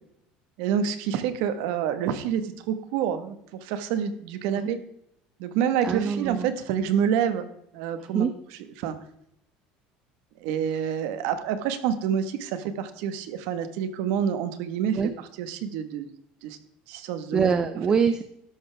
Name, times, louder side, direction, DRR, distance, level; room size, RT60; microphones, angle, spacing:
voice 1, 0.6-4.8 5.4-7.5 7.7-8.3 8.8-9.0 10.4-15.0 15.4-16.1 16.4-16.6 16.9-17.5, right 8 dB, 70° right, 10 dB, 1.4 m, -27 dB
voice 2, 5.8-6.5 8.0-8.3 14.9-15.1 17.3-18.2, right 6 dB, 20° right, 10 dB, 0.6 m, -24 dB
13.0 x 11.0 x 3.5 m, 0.76 s
cardioid pair, 170°, 3 cm